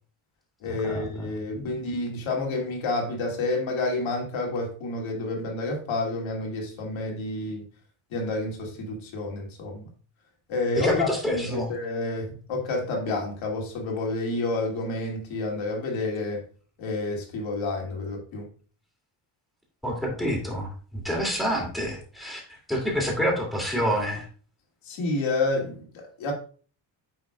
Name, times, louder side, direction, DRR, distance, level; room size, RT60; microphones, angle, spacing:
voice 1, 0.6-7.6 8.1-9.9 10.5-16.5 16.8-18.5 24.8-26.3, left 2 dB, 80° left, 2.6 m, -29 dB
voice 2, 10.7-11.7 19.8-24.3, equal, ahead, 2.5 m, -28 dB
9.4 x 5.8 x 2.4 m
cardioid pair, 155°, 46 cm